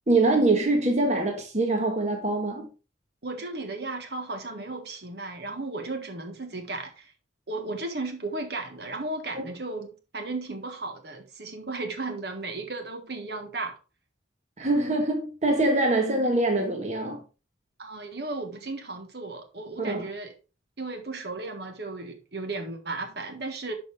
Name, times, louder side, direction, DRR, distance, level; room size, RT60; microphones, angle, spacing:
voice 1, 0.1-2.7 9.3-9.4 14.6-17.2 19.8-20.1, right 2 dB, 35° right, 1.4 m, -24 dB
voice 2, 3.2-7.1 7.5-13.8 17.8-20.3 20.8-23.7, right 2 dB, 60° right, 1.6 m, -35 dB
12.0 x 5.3 x 3.5 m
head